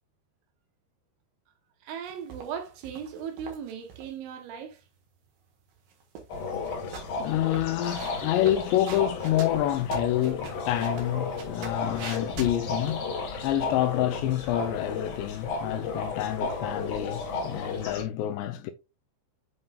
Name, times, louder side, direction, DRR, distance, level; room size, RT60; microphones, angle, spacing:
voice 1, 1.8-4.8, right 7 dB, 80° right, 3.6 m, -37 dB
sound 1, 2.1-4.1 5.8-6.4 6.6-13.0, right 6 dB, 60° right, 2.5 m, -43 dB
sound 2, 6.3-18.0, left 4 dB, 55° left, 2.8 m, -33 dB
voice 2, 7.1-18.7, left 13 dB, 80° left, 2.6 m, -28 dB
7.8 x 5.5 x 2.3 m
omnidirectional pair, 5.4 m